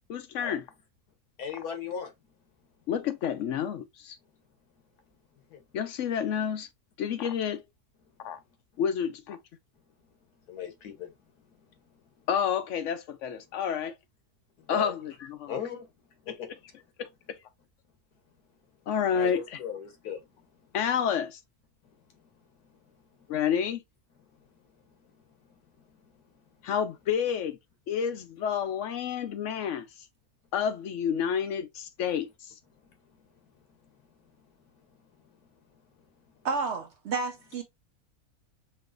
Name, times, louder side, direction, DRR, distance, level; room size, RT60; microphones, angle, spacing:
voice 1, 0.1-0.7 2.9-4.2 5.7-6.7 7.0-7.6 8.2-8.4 8.8-9.4 12.3-13.9 14.7-15.6 16.3-16.6 17.0-17.4 18.9-19.4 20.7-21.4 23.3-23.8 26.6-27.6 27.9-29.9 30.5-32.5, left 8 dB, 65° left, 0.8 m, -29 dB
voice 2, 1.4-2.1 5.5-5.6 10.5-11.1 14.7-14.9 15.5-15.9 16.3-16.5 19.1-20.2, left 6 dB, 85° left, 1.6 m, -36 dB
voice 3, 36.4-37.6, right 4 dB, 65° right, 0.7 m, -31 dB
5.3 x 2.8 x 2.4 m
omnidirectional pair, 1.6 m